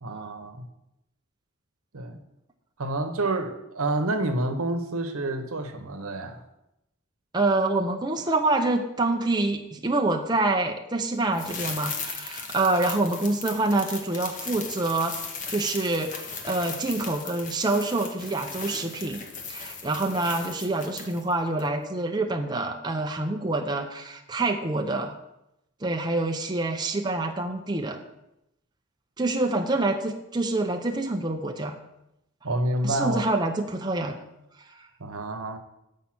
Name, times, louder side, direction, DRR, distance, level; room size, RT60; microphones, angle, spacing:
voice 1, 0.0-0.6 1.9-2.2 2.8-6.4 32.4-33.2 35.0-35.6, right 2 dB, 85° right, 7 dB, 0.9 m, -28 dB
voice 2, 7.3-15.1 15.5-19.2 19.5-25.2 25.8-28.0 29.2-31.8 32.8-34.3 34.6-34.7, right 2 dB, 20° right, 4 dB, 0.5 m, -26 dB
sound 1, 11.3-21.3 21.6-21.7, left 5 dB, 35° left, 0.9 m, -37 dB
7.4 x 5.4 x 5.8 m, 0.87 s
head